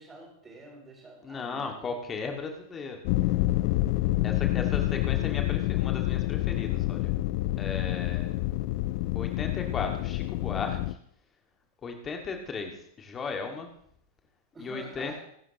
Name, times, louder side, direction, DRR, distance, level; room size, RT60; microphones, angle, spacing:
voice 1, 0.0-1.9 2.3-2.5 4.6-4.8 7.8-8.2 14.5-15.2, right 1 dB, 15° right, 0 dB, 6.7 m, -48 dB
voice 2, 1.2-3.0 4.2-7.1 7.6-8.4 9.1-11.0 11.8-13.7 14.6-15.1, left 4 dB, 20° left, 3 dB, 2.1 m, -36 dB
sound 1, 3.0-10.9, left 17 dB, 45° left, 0.5 m, -28 dB
24.0 x 12.5 x 3.0 m, 0.67 s
figure-of-eight pair, 90°, 0 cm